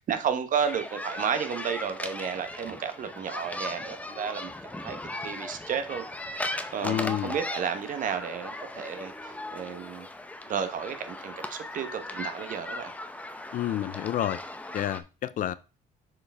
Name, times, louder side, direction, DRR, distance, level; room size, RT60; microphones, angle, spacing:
voice 1, 0.0-5.0 5.2-6.0 6.3-6.4 6.7-10.1 10.5-12.9, right 7 dB, 50° right, 1.1 m, -32 dB
sound 1, 0.6-15.0, left 1 dB, 10° left, 0.6 m, -38 dB
voice 2, 6.8-7.4 13.5-14.4 14.7-15.5, left 12 dB, 50° left, 0.4 m, -29 dB
6.7 x 4.8 x 3.4 m
cardioid pair, 110°, 17 cm